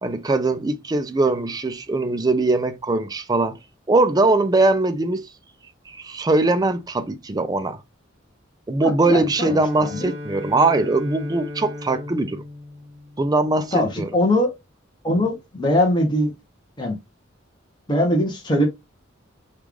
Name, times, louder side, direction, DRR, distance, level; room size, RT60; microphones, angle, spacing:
voice 1, 0.0-3.5 3.9-5.3 5.9-7.8 8.7-12.4 13.2-14.1, right 2 dB, 20° right, 0.4 m, -21 dB
voice 2, 8.8-10.1 13.7-14.5 15.0-16.3 16.8-17.0 17.9-18.7, left 1 dB, 20° left, 0.9 m, -21 dB
Bowed string instrument, 9.3-13.9, left 2 dB, 65° right, 0.8 m, -37 dB
3.1 x 2.4 x 3.5 m
head